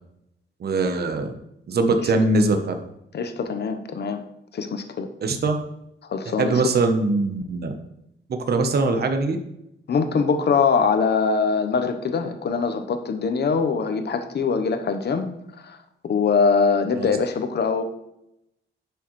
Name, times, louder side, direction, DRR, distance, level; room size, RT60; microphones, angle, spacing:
voice 1, 0.6-1.4 1.7-2.7 5.2-5.6 6.3-7.7 8.3-9.4 16.9-17.1, right 3 dB, 50° right, 6 dB, 0.9 m, -22 dB
voice 2, 3.1-4.2 4.5-5.1 6.1-6.6 9.9-15.3 15.6-15.8 16.0-17.8, left 5 dB, 55° left, 8 dB, 0.9 m, -22 dB
10.0 x 6.3 x 3.2 m, 0.82 s
wide cardioid pair, 140°, 21 cm